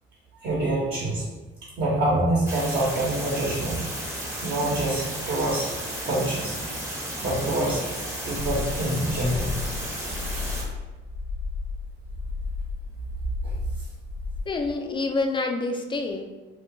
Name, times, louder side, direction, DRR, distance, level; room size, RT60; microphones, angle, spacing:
voice 1, 0.4-1.2 1.8-3.8 4.4-5.7 6.0-6.6 7.2-7.9 8.3-9.6 13.4-13.5, right 1 dB, 55° right, -7 dB, 0.9 m, -26 dB
sound 1, 2.5-10.6, right 1 dB, 15° right, 0.8 m, -33 dB
sound 2, 8.3-14.4, left 4 dB, 85° left, 0.5 m, -33 dB
voice 2, 14.5-16.2, left 3 dB, 25° left, 4 dB, 0.4 m, -27 dB
2.4 x 2.2 x 3.7 m, 1.2 s
cardioid pair, 90°, 20 cm